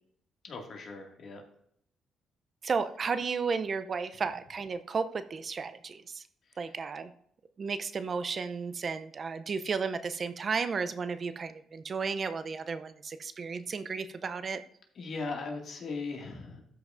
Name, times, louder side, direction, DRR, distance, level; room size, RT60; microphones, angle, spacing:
voice 1, 0.4-1.4 6.5-6.6 15.0-16.6, left 3 dB, 60° left, 1 dB, 2.0 m, -38 dB
voice 2, 2.6-6.2 6.6-7.1 7.6-14.6, right 5 dB, 45° right, 11 dB, 0.5 m, -33 dB
13.0 x 5.8 x 2.5 m, 0.69 s
cardioid pair, 90°, 0 cm